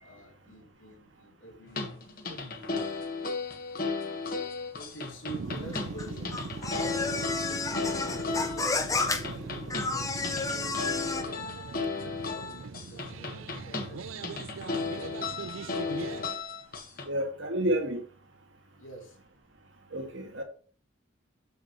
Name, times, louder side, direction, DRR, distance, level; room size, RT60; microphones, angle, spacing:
voice 1, 0.0-3.0 4.3-6.4 6.7-9.3 9.8-10.9 12.3-14.5 15.6-16.5 18.8-19.2, equal, 85° left, 2.5 m, -47 dB
sound 1, 1.7-17.0, left 4 dB, 45° left, 1.6 m, -35 dB
sound 2, 5.3-16.3, right 4 dB, 90° right, 0.5 m, -41 dB
sound 3, 5.4-11.2, left 3 dB, 15° left, 0.7 m, -32 dB
voice 2, 17.1-18.0 19.9-20.4, right 1 dB, 70° right, 2.1 m, -30 dB
7.3 x 6.9 x 3.2 m
head